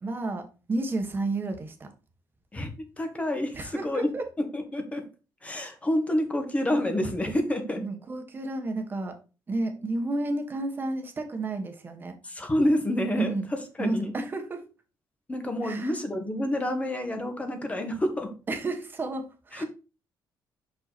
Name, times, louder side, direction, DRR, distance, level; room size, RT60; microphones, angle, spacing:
voice 1, 0.0-1.9 3.5-4.3 7.8-9.2 9.5-12.1 13.2-13.5 13.8-14.6 15.6-15.9 18.5-19.6, right 2 dB, 30° right, 1.5 m, -31 dB
voice 2, 3.0-5.1 5.4-7.8 12.2-14.1 15.3-18.3 19.5-19.6, left 1 dB, 20° left, 1.6 m, -28 dB
6.0 x 5.6 x 4.3 m
cardioid pair, 130°, 7 cm